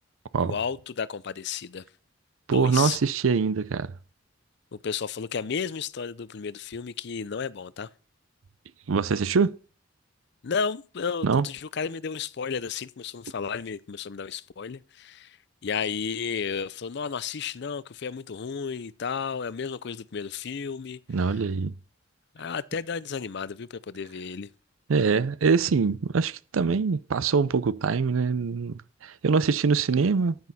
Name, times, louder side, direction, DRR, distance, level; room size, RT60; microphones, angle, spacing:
voice 1, 0.4-1.8 2.5-3.0 4.8-7.9 10.4-15.4 15.6-21.0 22.3-24.5, left 6 dB, 60° left, 0.5 m, -32 dB
voice 2, 2.5-3.9 8.9-9.6 11.2-11.5 21.1-21.7 24.9-30.5, right 5 dB, 90° right, 0.5 m, -24 dB
9.5 x 9.4 x 4.1 m
head